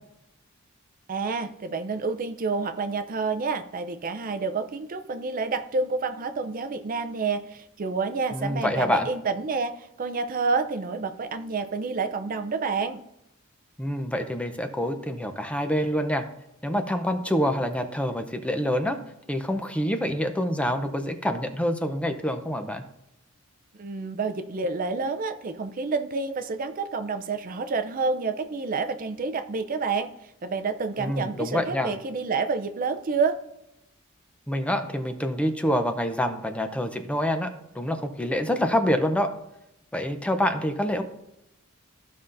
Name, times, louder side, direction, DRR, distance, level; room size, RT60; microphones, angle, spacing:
voice 1, 1.1-13.0 23.8-30.1 30.4-33.4, right 4 dB, 40° right, 9 dB, 0.5 m, -29 dB
voice 2, 8.3-9.1 13.8-16.2 16.6-19.0 19.3-22.8 31.0-31.9 34.5-37.5 37.7-39.3 39.9-41.0, equal, 5° left, 7 dB, 0.6 m, -26 dB
14.5 x 5.5 x 2.6 m, 0.86 s
head